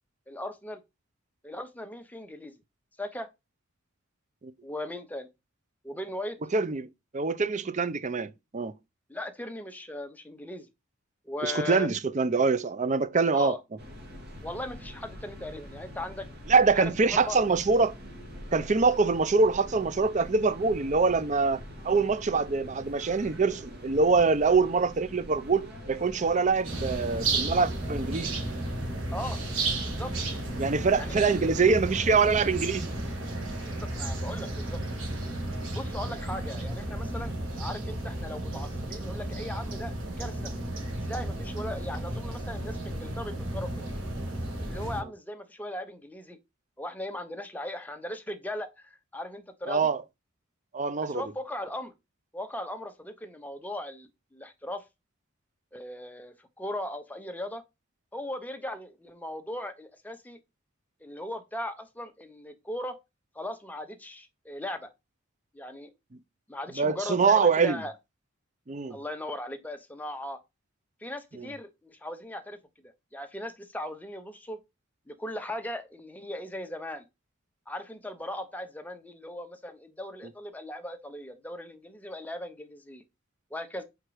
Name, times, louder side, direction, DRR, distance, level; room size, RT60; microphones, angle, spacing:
voice 1, 0.3-0.8 1.4-2.5 3.0-3.3 4.6-5.3 5.8-6.4 9.1-10.7 11.2-11.9 13.3-13.6 14.4-16.3 16.7-17.4 29.1-29.4 29.8-30.1 30.9-31.3 33.6-34.8 35.7-40.5 41.1-43.9 44.6-46.4 46.8-49.9 51.0-51.9 52.3-54.8 55.7-57.6 58.1-60.4 61.0-63.0 63.3-64.9 65.5-65.9 66.5-67.9 68.9-70.4 71.0-72.6 73.1-74.6 75.1-77.1 77.7-83.0 83.5-83.8, left 1 dB, 10° left, 0.8 m, -38 dB
voice 2, 6.5-6.9 7.1-8.7 11.4-13.6 16.5-17.9 18.5-28.4 30.6-32.9 49.7-50.0 50.7-51.2 66.8-67.8 68.7-69.0 71.3-71.5, right 4 dB, 35° right, 0.5 m, -24 dB
sound 1, 13.8-33.1, equal, 50° right, 2.2 m, -45 dB
sound 2, 26.6-45.0, right 2 dB, 70° right, 3.5 m, -33 dB
5.1 x 4.5 x 4.8 m
head